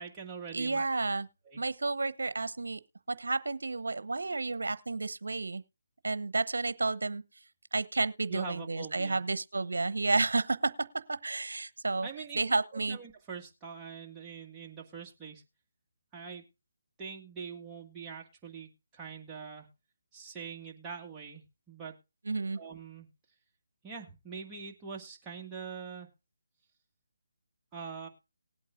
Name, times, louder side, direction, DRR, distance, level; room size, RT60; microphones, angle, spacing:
voice 1, 0.0-0.9 1.5-1.6 8.3-9.2 12.0-12.4 12.7-15.4 16.1-16.4 17.0-19.7 20.1-21.9 22.6-23.1 23.8-26.1 27.7-28.1, right 6 dB, 15° right, 1.9 m, -43 dB
voice 2, 0.5-1.3 1.6-2.8 3.1-5.6 6.0-7.2 7.7-10.7 11.1-12.1 12.4-13.0 22.3-22.6, right 3 dB, 80° right, 0.9 m, -31 dB
19.5 x 8.4 x 2.4 m
figure-of-eight pair, 155°, 0 cm